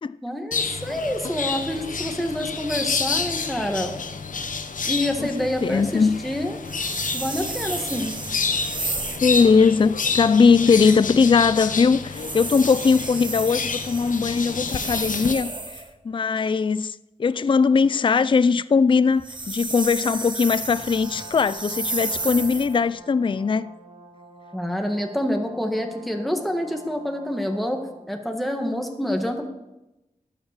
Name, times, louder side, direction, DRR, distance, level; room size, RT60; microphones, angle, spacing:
voice 1, 0.2-3.9 4.9-6.6 7.1-8.1 24.5-27.8 28.1-29.5, left 1 dB, ahead, 1.7 m, -27 dB
sound 1, 0.5-15.3, left 5 dB, 80° left, 0.9 m, -29 dB
voice 2, 5.2-6.2 9.2-23.7, left 5 dB, 40° left, 0.4 m, -20 dB
sound 2, 6.6-9.3 12.1-15.9 19.1-22.8, right 2 dB, 35° right, 1.5 m, -32 dB
Brass instrument, 20.4-28.1, right 2 dB, 50° right, 2.2 m, -46 dB
12.0 x 8.0 x 6.6 m
wide cardioid pair, 60°, 13 cm